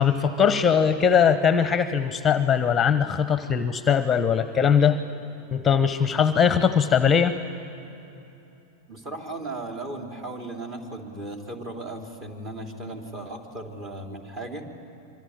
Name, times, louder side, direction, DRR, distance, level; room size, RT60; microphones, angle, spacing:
voice 1, 0.0-5.0 5.5-7.3, left 7 dB, 15° left, 12 dB, 0.9 m, -20 dB
voice 2, 8.9-14.7, right 2 dB, 30° right, 3 dB, 3.6 m, -36 dB
25.5 x 24.0 x 8.9 m, 3.0 s
figure-of-eight pair, 90°, 0 cm